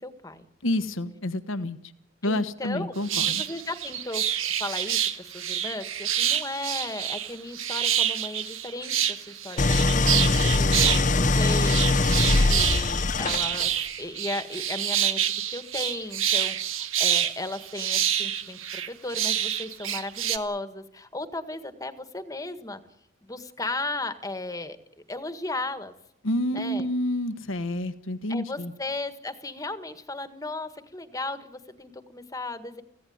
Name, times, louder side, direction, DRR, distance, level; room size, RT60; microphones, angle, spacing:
voice 1, 0.0-0.5 2.2-2.9 3.2-22.8 23.2-24.8 25.1-25.9 26.5-26.9 28.3-32.8, left 2 dB, 15° left, 10 dB, 1.7 m, -36 dB
voice 2, 0.6-1.8 2.2-3.4 26.2-28.7, left 1 dB, 75° left, 10 dB, 1.3 m, -28 dB
sound 1, 3.1-20.4, right 10 dB, 80° right, 1.6 m, -27 dB
Idling, 9.6-13.8, left 3 dB, 40° left, 0.8 m, -22 dB
24.5 x 16.0 x 9.6 m, 0.79 s
head